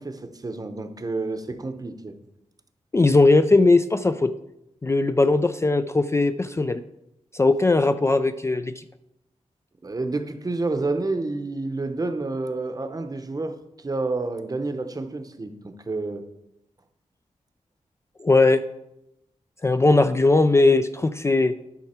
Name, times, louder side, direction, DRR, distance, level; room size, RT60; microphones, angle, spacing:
voice 1, 0.0-2.1 9.8-16.2, right 3 dB, 30° right, 7 dB, 0.8 m, -29 dB
voice 2, 2.9-4.3 4.8-6.8 7.3-8.8 18.2-18.6 19.6-21.6, left 3 dB, 20° left, 10 dB, 0.3 m, -19 dB
12.0 x 5.8 x 4.3 m, 0.87 s
wide cardioid pair, 125°, 12 cm